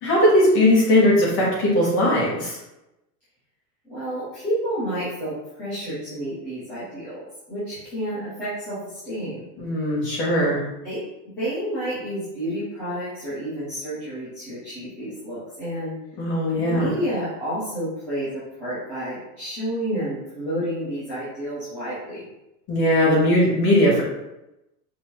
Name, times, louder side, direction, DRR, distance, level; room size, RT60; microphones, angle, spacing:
voice 1, 0.0-2.6 9.6-10.6 16.2-16.9 22.7-24.0, left 1 dB, 25° left, -5 dB, 1.1 m, -19 dB
voice 2, 3.9-8.8 9.0-9.4 10.4-10.6 10.8-15.9 16.6-22.2, equal, 5° left, -15 dB, 0.4 m, -30 dB
5.3 x 2.7 x 3.0 m, 0.93 s
supercardioid pair, 175°, 48 cm